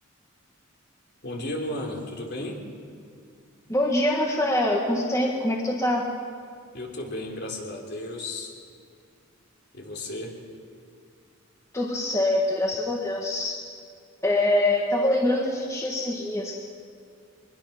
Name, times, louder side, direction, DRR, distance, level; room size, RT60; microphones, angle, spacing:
voice 1, 1.2-2.6 6.7-8.5 9.7-10.4, left 1 dB, 55° left, 1 dB, 3.4 m, -34 dB
voice 2, 3.7-6.0 11.7-13.6 14.2-16.6, left 1 dB, 15° left, 0 dB, 1.7 m, -24 dB
22.5 x 21.0 x 5.9 m, 2.3 s
head